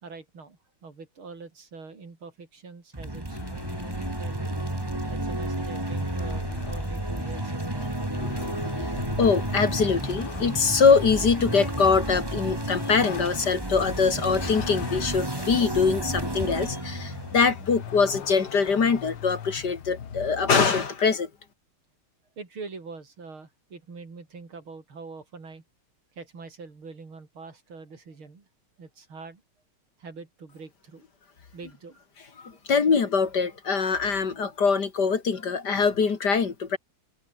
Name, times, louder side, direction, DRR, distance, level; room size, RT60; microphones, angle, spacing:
voice 1, 0.0-4.5 5.1-7.9 22.4-25.6 26.1-28.5 28.8-29.4 30.0-31.1 31.5-32.0 32.5-32.6, right 4 dB, 75° right, 4.9 m, -44 dB
Epic Intro, 2.9-18.4, right 1 dB, 10° right, 2.3 m, -32 dB
Vehicle, 3.3-20.5, left 9 dB, 80° left, 2.3 m, -42 dB
voice 2, 8.1-21.3 32.4-36.8, left 5 dB, 50° left, 2.5 m, -23 dB
omnidirectional pair, 2.3 m